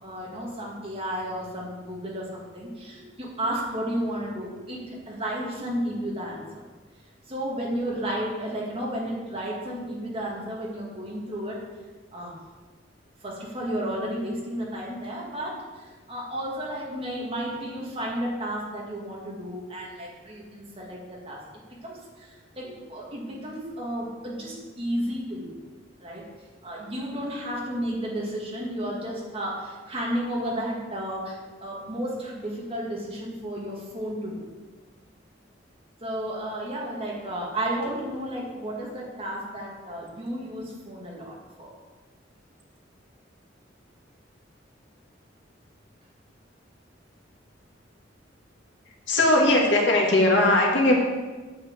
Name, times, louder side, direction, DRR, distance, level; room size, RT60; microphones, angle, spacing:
voice 1, 0.0-6.6 7.3-11.6 12.1-12.3 13.2-21.4 21.8-25.6 26.0-26.3 26.6-34.5 36.0-41.7, right 1 dB, 30° right, -3 dB, 2.2 m, -32 dB
voice 2, 49.1-50.9, left 1 dB, 70° left, -1 dB, 2.0 m, -19 dB
8.6 x 5.2 x 7.8 m, 1.3 s
head